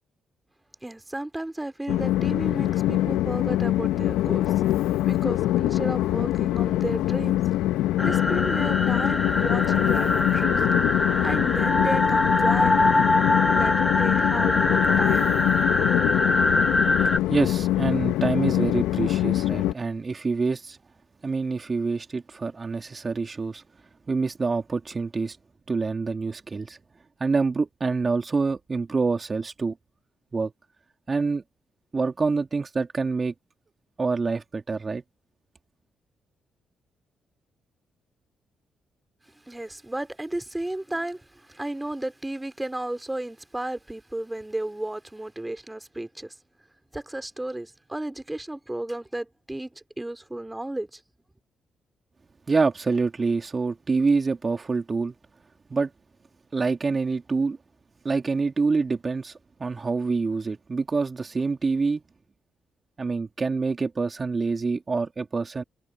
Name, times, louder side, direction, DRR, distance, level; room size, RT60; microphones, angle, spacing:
voice 1, 0.8-4.5 5.1-7.4 8.0-10.6 11.2-12.9 13.5-15.2 39.5-46.3 46.9-51.0, right 1 dB, 15° right, 3.9 m, -33 dB
Train, 1.9-19.7, left 14 dB, 75° left, 1.3 m, -24 dB
sound 1, 8.0-17.2, left 2 dB, 20° left, 2.8 m, -23 dB
voice 2, 17.3-20.8 21.2-23.6 24.1-25.4 25.7-26.8 27.2-29.8 30.3-30.5 31.1-31.4 31.9-33.3 34.0-35.0 52.5-55.1 55.7-55.9 56.5-57.6 58.0-62.0 63.0-65.6, right 4 dB, 40° right, 2.8 m, -26 dB
hypercardioid pair, 45°, 0 cm